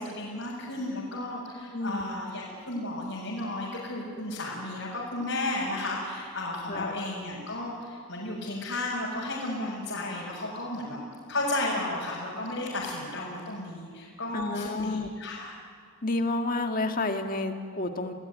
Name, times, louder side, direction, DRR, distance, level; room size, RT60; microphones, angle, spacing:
voice 1, 0.0-11.0 11.3-15.5, left 2 dB, 65° left, -5 dB, 5.6 m, -33 dB
voice 2, 14.3-15.1 16.0-18.1, left 2 dB, 40° left, 5 dB, 1.8 m, -30 dB
28.0 x 18.5 x 9.5 m, 2.1 s
head